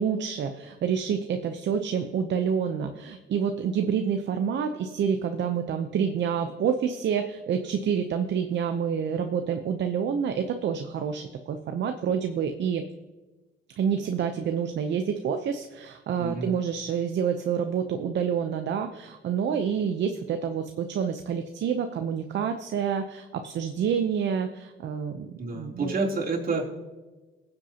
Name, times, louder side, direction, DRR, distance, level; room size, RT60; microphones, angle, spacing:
voice 1, 0.0-12.9 13.8-25.9, right 7 dB, 65° right, 7 dB, 0.8 m, -28 dB
voice 2, 16.2-16.5 25.4-26.7, right 3 dB, 50° right, -2 dB, 3.3 m, -29 dB
20.5 x 7.9 x 2.9 m, 1.2 s
cardioid pair, 90°, 20 cm